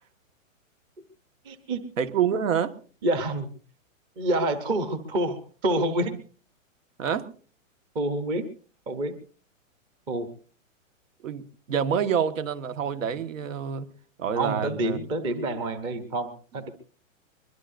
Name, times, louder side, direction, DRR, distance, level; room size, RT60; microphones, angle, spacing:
voice 1, 1.4-1.8 3.0-3.5 4.2-6.2 7.9-8.4 8.9-9.1 10.1-10.3 14.3-16.7, right 1 dB, 10° right, 11 dB, 0.7 m, -27 dB
voice 2, 2.0-2.8 7.0-7.3 11.2-13.9 14.2-15.0, right 7 dB, 75° right, 12 dB, 1.6 m, -27 dB
22.5 x 22.0 x 2.6 m, 0.41 s
hypercardioid pair, 165°, 39 cm